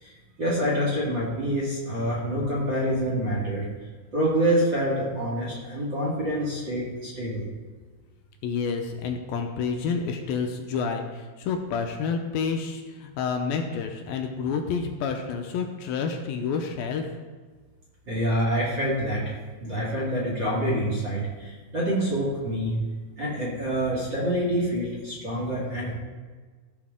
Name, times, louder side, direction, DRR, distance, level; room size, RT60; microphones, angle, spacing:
voice 1, 0.4-3.6 4.1-7.4 18.1-19.3 19.6-22.8 23.2-26.0, equal, 40° right, -6 dB, 2.0 m, -26 dB
voice 2, 8.4-17.0, left 5 dB, 75° left, 4 dB, 2.4 m, -29 dB
15.0 x 6.8 x 3.7 m, 1.4 s
omnidirectional pair, 4.6 m